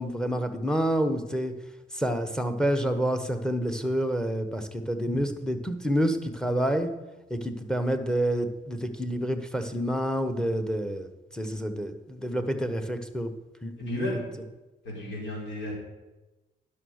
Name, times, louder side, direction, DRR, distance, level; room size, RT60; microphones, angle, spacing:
voice 1, 0.0-1.5 1.9-6.9 7.3-13.3 13.6-14.2, equal, 5° left, 7 dB, 1.1 m, -28 dB
voice 2, 13.9-14.2 14.8-15.7, left 1 dB, 70° left, -3 dB, 4.5 m, -34 dB
11.0 x 6.4 x 6.4 m, 1.1 s
cardioid pair, 90°, 20 cm